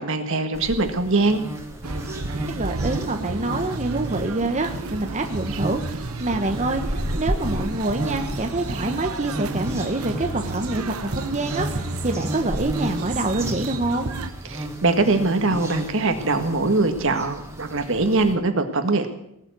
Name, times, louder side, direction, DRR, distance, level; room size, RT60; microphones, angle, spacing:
voice 1, 0.0-1.4 14.5-19.1, right 3 dB, 60° right, 7 dB, 1.7 m, -22 dB
sound 1, 0.5-18.3, right 1 dB, 15° right, 2.0 m, -33 dB
sound 2, 1.8-14.3, right 2 dB, 80° right, 1.1 m, -32 dB
voice 2, 2.5-14.1, right 2 dB, 35° right, 4 dB, 1.1 m, -26 dB
19.0 x 7.4 x 9.4 m, 0.78 s
head